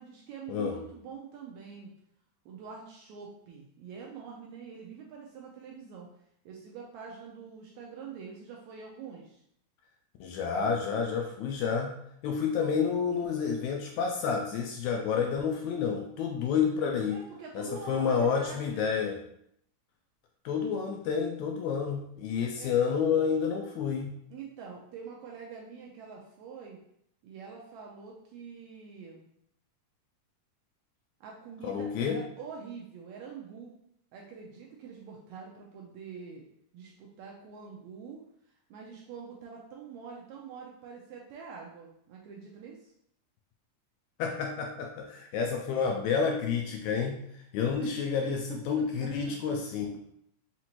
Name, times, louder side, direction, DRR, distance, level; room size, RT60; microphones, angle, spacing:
voice 1, 0.0-1.9 2.4-6.1 6.4-9.4 17.1-18.9 22.6-22.7 24.3-26.8 27.2-29.3 31.2-33.7 34.1-36.5 36.7-38.2 38.7-42.9 47.8-48.4 48.8-49.6, right 6 dB, 80° right, -1 dB, 1.7 m, -45 dB
voice 2, 10.2-12.0 12.2-17.2 17.6-19.2 20.5-24.1 31.6-32.2 44.2-47.2 47.5-50.0, left 6 dB, 80° left, 2 dB, 1.7 m, -29 dB
5.8 x 2.5 x 2.9 m, 0.72 s
omnidirectional pair, 3.7 m